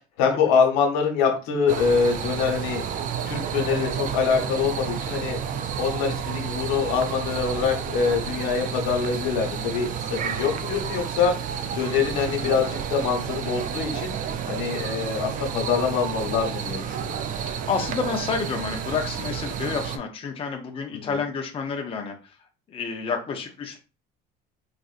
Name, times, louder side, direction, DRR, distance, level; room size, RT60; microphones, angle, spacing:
voice 1, 0.2-2.8 3.3-5.4 5.8-11.3 11.7-14.1 14.5-17.1 20.9-21.1, left 6 dB, 90° left, 3 dB, 1.1 m, -24 dB
sound 1, 1.7-20.0, right 8 dB, 45° right, 0.4 m, -31 dB
voice 2, 17.7-22.3 22.7-23.8, left 5 dB, 30° left, 3 dB, 0.7 m, -29 dB
3.9 x 2.5 x 2.5 m, 0.32 s
cardioid pair, 115°, 19 cm